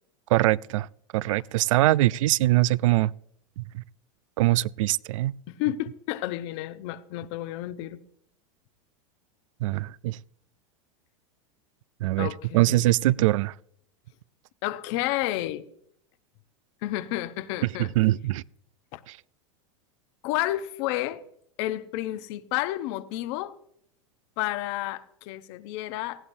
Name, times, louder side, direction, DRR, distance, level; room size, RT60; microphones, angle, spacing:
voice 1, 0.3-0.9 1.1-3.1 3.6-3.8 4.4-5.3 9.6-10.2 12.0-12.3 12.5-13.5 18.0-18.4, right 17 dB, 75° right, 0.4 m, -22 dB
voice 2, 5.5-8.0 12.2-12.9 14.6-15.6 16.8-17.9 18.9-19.0 20.2-21.2 21.6-23.6 24.4-26.3, left 15 dB, 60° left, 0.9 m, -31 dB
18.5 x 15.5 x 2.7 m
hypercardioid pair, 110°, 17 cm